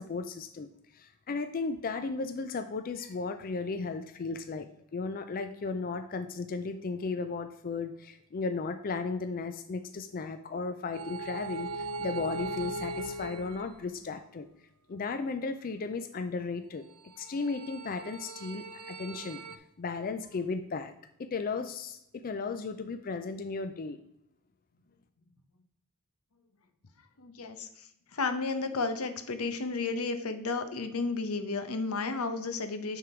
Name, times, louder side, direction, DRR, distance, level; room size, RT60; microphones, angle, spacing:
voice 1, 0.0-4.7 4.9-14.5 14.9-16.8 17.2-19.4 19.8-20.9 21.2-24.0, left 4 dB, 40° left, 9 dB, 0.4 m, -35 dB
sound 1, 10.9-14.1 17.0-19.6, right 2 dB, 85° right, 0.6 m, -39 dB
voice 2, 27.2-33.0, left 3 dB, 85° left, 9 dB, 0.9 m, -33 dB
9.6 x 3.7 x 4.4 m, 0.78 s
head